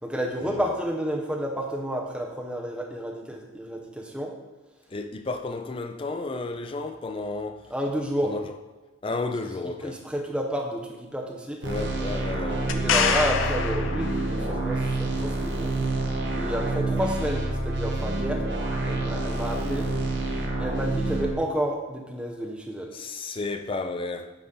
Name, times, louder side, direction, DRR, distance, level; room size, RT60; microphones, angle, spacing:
voice 1, 0.0-4.3 7.7-8.3 9.8-11.6 12.7-15.7 16.4-18.4 18.8-19.9 20.6-22.9, equal, 5° right, 0.8 m, -30 dB
voice 2, 4.9-7.7 8.2-8.5 9.0-10.0 11.6-12.8 22.9-24.3, left 3 dB, 25° left, 0.4 m, -32 dB
sound 1, 11.6-21.3, right 2 dB, 55° right, 0.9 m, -28 dB
sound 2, 12.7-14.7 18.3-18.4, left 6 dB, 75° left, 0.6 m, -26 dB
9.5 x 4.1 x 3.8 m
head